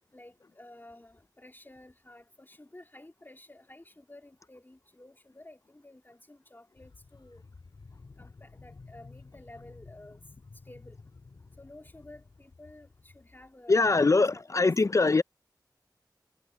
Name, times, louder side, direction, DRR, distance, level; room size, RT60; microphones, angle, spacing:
voice 1, 0.1-7.4 8.2-10.2 10.7-11.0 11.6-14.7, left 1 dB, 25° left, 3.3 m, -52 dB
sound 1, 6.8-13.5 14.0-14.1, left 3 dB, 85° left, 5.5 m, -53 dB
voice 2, 13.7-15.2, left 3 dB, 45° left, 0.4 m, -22 dB
wide cardioid pair, 45°, 8 cm